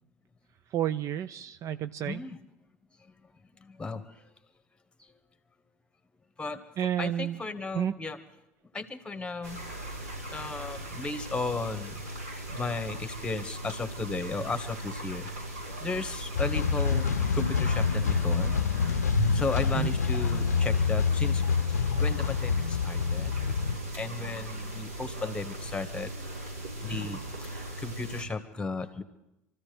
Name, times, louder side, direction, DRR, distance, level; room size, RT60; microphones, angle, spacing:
voice 1, 0.7-2.2 6.8-7.4 7.7-7.9 19.7-19.9, right 10 dB, 40° right, 13 dB, 0.5 m, -30 dB
voice 2, 2.1-2.4 3.6-4.0 6.4-6.6 7.0-8.2 8.7-9.6 10.3-12.0 12.5-15.3 15.8-17.1 17.3-18.6 19.3-21.4 21.7-23.3 23.9-26.3 26.8-29.0, left 3 dB, 10° left, 9 dB, 1.7 m, -35 dB
sound 1, 9.4-28.2, right 1 dB, 80° right, 6.8 m, -37 dB
sound 2, 16.3-23.8, left 6 dB, 80° left, 0.6 m, -27 dB
27.0 x 14.5 x 3.5 m, 0.91 s
figure-of-eight pair, 70°, 8 cm